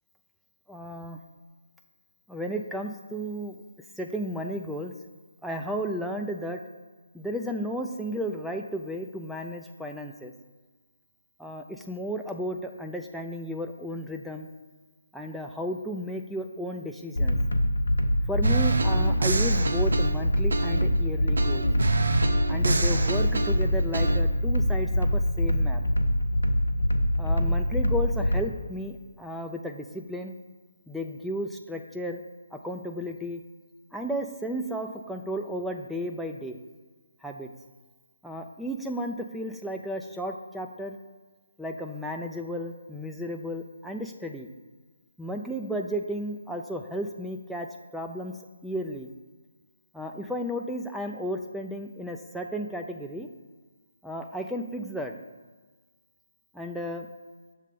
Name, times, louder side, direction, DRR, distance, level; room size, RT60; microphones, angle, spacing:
voice 1, 0.7-1.2 2.3-3.6 4.0-4.9 5.4-6.6 7.1-10.3 11.4-14.5 15.1-17.4 18.3-21.7 22.5-25.8 27.2-30.3 30.9-32.2 32.5-33.4 33.9-36.6 37.2-37.5 38.2-41.0 41.6-44.5 45.2-47.7 47.9-48.3 48.6-49.1 49.9-53.3 54.0-55.1 56.5-57.1, equal, ahead, 2 dB, 0.3 m, -33 dB
sound 1, 17.2-28.4, equal, 85° left, 0.7 m, -24 dB
sound 2, 18.4-21.0 21.4-24.2, right 3 dB, 75° right, 0.5 m, -29 dB
6.5 x 3.2 x 5.1 m, 1.4 s
figure-of-eight pair, 150°, 0 cm